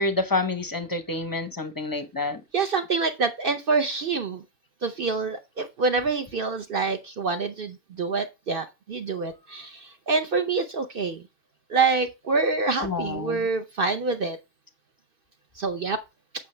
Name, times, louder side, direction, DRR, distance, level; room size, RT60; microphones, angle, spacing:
voice 1, 0.0-2.4 12.8-13.5, left 2 dB, 20° left, 0.5 m, -28 dB
voice 2, 2.5-4.4 4.8-11.2 11.7-14.4 15.6-16.0, right 4 dB, 60° right, 0.6 m, -26 dB
8.2 x 5.7 x 3.2 m
omnidirectional pair, 1.6 m